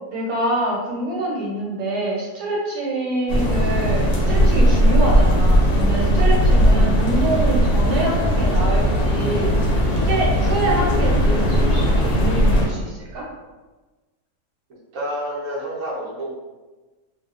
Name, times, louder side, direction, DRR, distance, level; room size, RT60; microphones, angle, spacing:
voice 1, 0.1-13.3, right 1 dB, 90° right, -4 dB, 1.2 m, -25 dB
sound 1, 3.3-12.7, equal, 65° left, 0.8 m, -18 dB
voice 2, 14.9-16.3, equal, 65° right, -5 dB, 1.0 m, -28 dB
2.7 x 2.1 x 2.3 m, 1.2 s
omnidirectional pair, 1.6 m